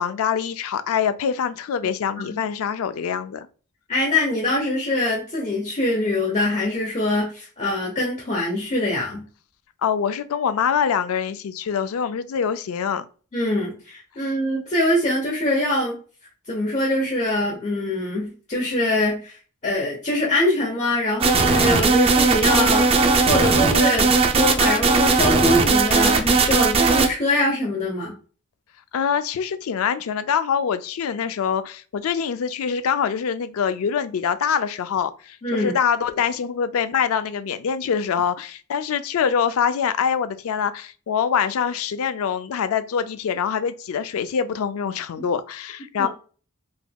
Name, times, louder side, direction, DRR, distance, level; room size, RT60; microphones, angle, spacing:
voice 1, 0.0-3.5 9.8-13.1 28.9-46.1, left 7 dB, 75° left, 0.4 m, -24 dB
voice 2, 3.9-9.2 13.3-16.0 16.5-28.1 35.4-35.7 46.0-46.1, left 1 dB, 35° left, 0.8 m, -23 dB
sound 1, 21.2-27.1, right 4 dB, 25° right, 0.4 m, -18 dB
3.7 x 2.8 x 2.2 m
head